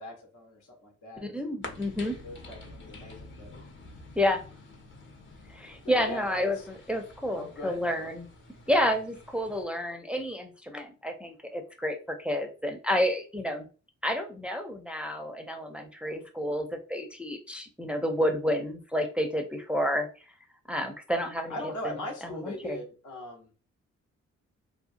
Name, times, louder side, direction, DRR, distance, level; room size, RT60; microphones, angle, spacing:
voice 1, 0.0-1.3 2.2-3.5 5.8-6.7 7.4-8.1 21.5-23.5, left 1 dB, 85° left, 1 dB, 0.9 m, -40 dB
voice 2, 1.2-2.1 4.2-4.4 5.5-6.6 6.9-8.3 8.7-13.7 14.0-20.1 20.7-21.6 21.8-22.0 22.3-22.8, equal, 5° right, 4 dB, 0.5 m, -30 dB
sound 1, 1.6-9.6, left 2 dB, 40° left, 0.8 m, -48 dB
2.7 x 2.2 x 2.5 m, 0.36 s
cardioid pair, 65°, 29 cm